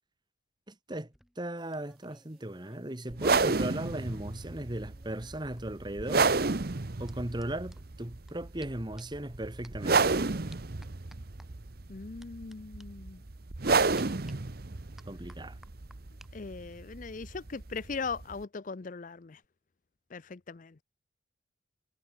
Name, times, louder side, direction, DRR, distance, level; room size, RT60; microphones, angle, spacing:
voice 1, 0.7-6.3 7.0-10.1 15.0-15.6, right 1 dB, 20° right, 1.4 m, -37 dB
sound 1, 1.1-4.3 4.6-8.3 8.6-8.7 9.0-9.2 9.6-10.0 10.5-11.5 12.2-12.5 12.8-12.9 13.7-14.3 15.0-16.3 16.6-17.0, equal, ahead, 6.0 m, -59 dB
sound 2, 3.1-18.4, right 4 dB, 50° right, 1.0 m, -31 dB
voice 2, 11.9-13.2 16.3-19.4 20.1-20.8, left 4 dB, 40° left, 0.5 m, -39 dB
head